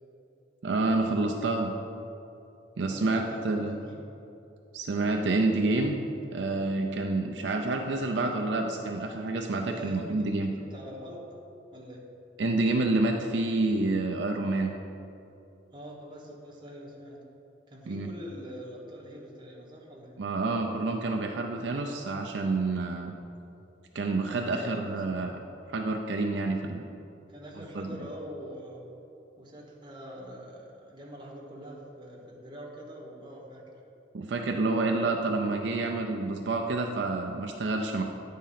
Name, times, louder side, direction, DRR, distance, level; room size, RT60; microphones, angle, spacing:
voice 1, 0.6-1.7 2.8-3.8 4.7-6.0 6.3-10.5 12.4-14.7 17.9-18.1 20.2-23.1 23.9-25.3 25.7-26.8 27.8-27.9 34.1-38.0, right 2 dB, 70° right, 2 dB, 0.5 m, -28 dB
voice 2, 2.9-4.1 9.6-11.3 11.7-12.1 15.7-17.2 17.7-20.2 24.4-25.0 27.3-28.9 29.4-33.6, equal, 25° right, -2 dB, 1.3 m, -44 dB
9.2 x 3.7 x 5.7 m, 2.7 s
head